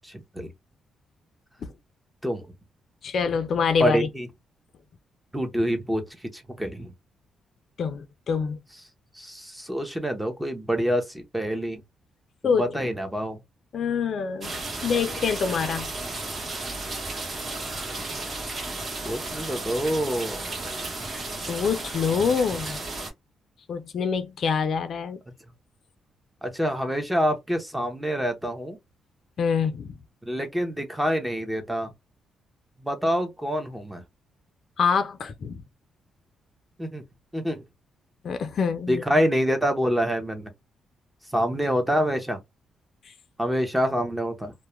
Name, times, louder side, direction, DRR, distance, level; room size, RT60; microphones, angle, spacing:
voice 1, 3.0-4.1 7.8-8.6 12.4-12.9 13.7-14.5 14.8-15.9 21.5-22.8 23.7-25.2 29.4-30.0 34.8-35.6 38.2-39.2 43.0-43.1, left 6 dB, 55° left, 0.4 m, -26 dB
voice 2, 3.8-4.3 5.3-6.0 6.3-6.9 9.2-11.8 12.4-13.4 19.0-20.4 26.4-28.8 30.2-31.9 32.8-34.0 36.8-37.0 37.3-37.6 38.9-40.5 41.3-42.4 43.4-44.5, equal, 5° right, 0.6 m, -26 dB
sound 1, 14.4-23.1, right 2 dB, 40° right, 0.9 m, -33 dB
2.2 x 2.1 x 2.9 m
cardioid pair, 120°, 0 cm